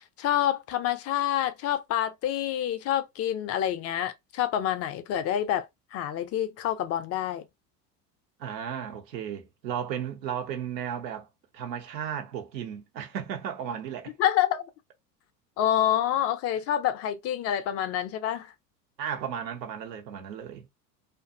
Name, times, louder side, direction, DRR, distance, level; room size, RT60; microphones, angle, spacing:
voice 1, 0.0-7.4 14.2-14.6 15.6-18.5, left 11 dB, 30° left, 0.4 m, -27 dB
voice 2, 8.4-11.3 11.5-14.1 19.0-20.7, right 8 dB, 80° right, 0.9 m, -34 dB
2.5 x 2.5 x 2.4 m
hypercardioid pair, 85°, 50 cm